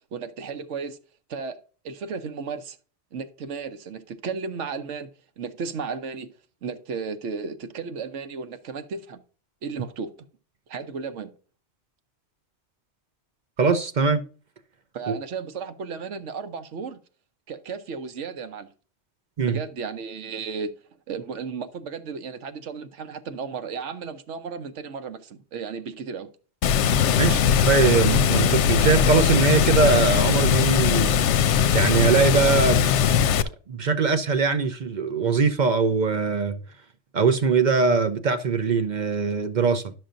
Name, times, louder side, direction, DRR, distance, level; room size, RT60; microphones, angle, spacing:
voice 1, 0.1-1.0 1.3-1.6 1.8-2.8 3.1-5.1 5.4-6.3 6.6-9.2 9.6-10.1 10.7-11.3 14.9-17.0 17.5-18.7 19.4-20.7 21.1-26.3 27.2-27.4, right 5 dB, 85° right, 1.2 m, -34 dB
voice 2, 13.6-14.2 15.1-15.2 19.4-19.6 27.2-31.2 31.7-32.9 33.7-36.6 37.1-39.9, right 5 dB, 50° right, 0.6 m, -21 dB
Water, 26.6-33.4, left 8 dB, 80° left, 0.9 m, -20 dB
11.5 x 6.0 x 2.5 m
omnidirectional pair, 1.2 m